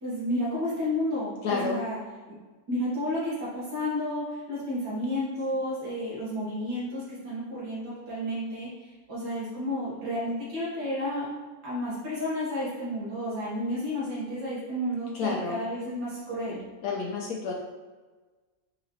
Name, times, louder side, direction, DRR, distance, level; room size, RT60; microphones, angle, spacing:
voice 1, 0.0-2.0 2.7-11.3 11.6-16.6, left 1 dB, 85° right, -9 dB, 1.9 m, -31 dB
voice 2, 1.4-1.8 15.1-15.7 16.8-17.5, left 4 dB, 70° left, 0 dB, 1.0 m, -29 dB
4.0 x 3.7 x 3.0 m, 1.3 s
omnidirectional pair, 1.7 m